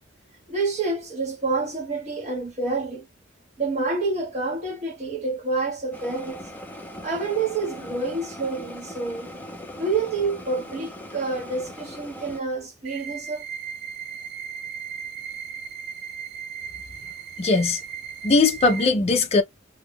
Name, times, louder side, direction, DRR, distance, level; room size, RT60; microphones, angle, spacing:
voice 1, 0.5-3.1 3.6-6.4 7.0-9.3 9.8-13.4, right 3 dB, 35° right, 1.5 m, -28 dB
sound 1, 5.9-12.4, equal, 10° left, 0.7 m, -40 dB
sound 2, 12.8-18.8, right 7 dB, 55° right, 0.5 m, -36 dB
voice 2, 17.4-17.8 18.2-19.4, left 3 dB, 30° left, 0.4 m, -19 dB
2.6 x 2.3 x 3.5 m
head